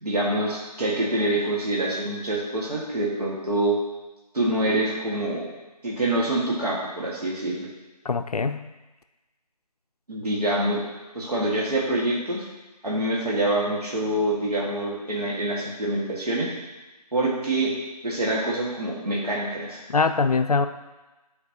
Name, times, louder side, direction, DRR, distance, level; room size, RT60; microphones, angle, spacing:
voice 1, 0.0-3.8 4.3-5.5 5.8-7.6 10.1-10.8 11.1-12.4 12.8-16.5 17.1-17.7 18.0-19.8, right 1 dB, 70° right, -5 dB, 1.8 m, -25 dB
voice 2, 8.0-8.7 19.9-20.7, left 4 dB, 65° left, 9 dB, 0.4 m, -23 dB
8.8 x 4.5 x 2.9 m, 1.1 s
figure-of-eight pair, 170°, 21 cm